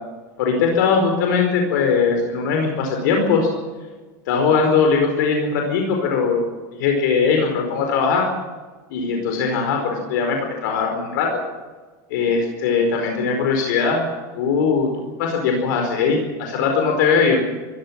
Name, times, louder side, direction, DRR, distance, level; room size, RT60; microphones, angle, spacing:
voice 1, 0.4-3.5 4.3-6.5 6.8-8.3 8.9-11.4 12.1-14.0 14.3-14.9 15.2-17.4, left 5 dB, 75° left, 3 dB, 4.9 m, -20 dB
24.5 x 15.5 x 7.5 m, 1.3 s
supercardioid pair, 145°, 10 cm